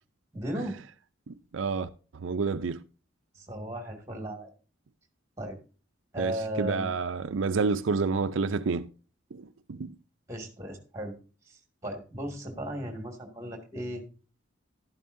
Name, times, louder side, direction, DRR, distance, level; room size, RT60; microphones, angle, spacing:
voice 1, 0.3-0.8 3.4-4.5 5.4-5.6 6.1-6.9 10.3-11.2 11.5-14.0, equal, 15° right, 2.1 m, -36 dB
voice 2, 1.3-1.9 2.2-2.8 6.2-6.3 6.6-8.9 9.3-9.4 9.7-9.9, right 4 dB, 80° right, 0.5 m, -29 dB
11.5 x 11.0 x 2.6 m
head